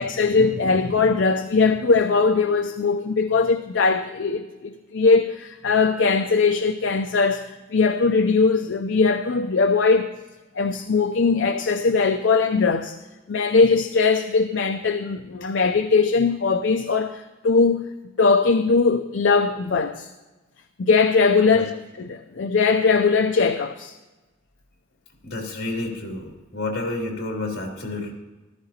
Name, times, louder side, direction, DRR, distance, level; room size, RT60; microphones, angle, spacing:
voice 1, 0.0-10.1 10.6-13.0 13.3-17.9 18.2-20.1 20.8-23.9, left 4 dB, 70° left, 0.5 m, -20 dB
voice 2, 25.2-28.1, left 2 dB, 55° left, 2.8 m, -30 dB
14.5 x 13.0 x 2.9 m
head